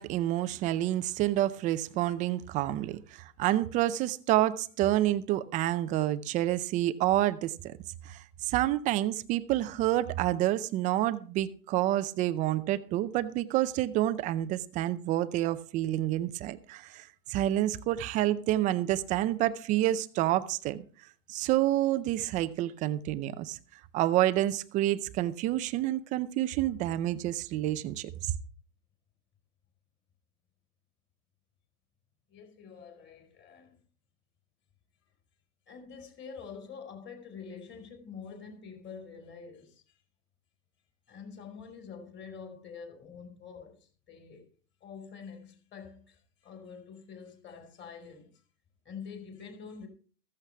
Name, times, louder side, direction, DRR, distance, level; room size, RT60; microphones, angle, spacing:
voice 1, 0.0-7.7 8.1-20.8 21.3-23.6 23.9-28.1, right 14 dB, 15° right, 0.5 m, -28 dB
voice 2, 32.3-33.8 35.7-40.0 41.1-44.5 44.8-48.3 48.9-49.9, left 6 dB, 25° left, 5.0 m, -46 dB
15.0 x 14.0 x 3.4 m
hypercardioid pair, 130°, 45 cm